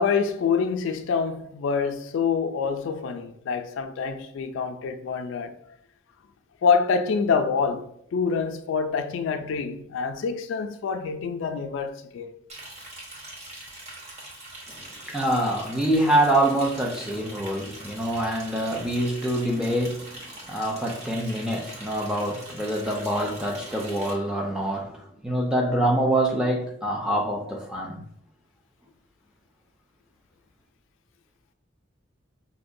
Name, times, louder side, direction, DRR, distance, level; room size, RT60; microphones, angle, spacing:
voice 1, 0.0-5.6 6.6-12.3, left 5 dB, 75° left, 0.3 m, -26 dB
Liquid, 12.5-24.1, right 1 dB, 35° right, 1.0 m, -42 dB
voice 2, 14.9-28.0, right 1 dB, 5° right, 0.4 m, -25 dB
5.1 x 2.1 x 2.5 m
head